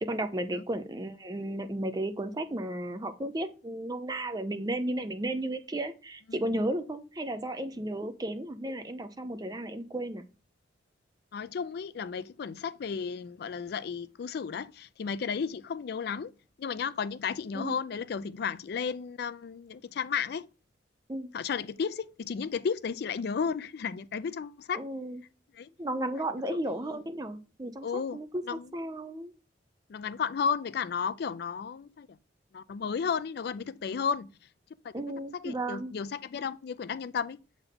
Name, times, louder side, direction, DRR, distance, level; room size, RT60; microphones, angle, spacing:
voice 1, 0.0-10.3 17.5-17.8 21.1-21.3 24.7-25.2 25.8-29.3 34.9-35.9, right 1 dB, 20° right, 0.6 m, -34 dB
voice 2, 11.3-16.3 16.6-20.5 21.3-24.8 25.5-25.7 26.2-26.3 26.5-27.0 27.8-28.2 28.5-28.7 29.9-32.2 32.5-34.3 34.8-34.9 35.3-37.4, left 6 dB, 60° left, 0.3 m, -33 dB
6.9 x 3.6 x 3.8 m
head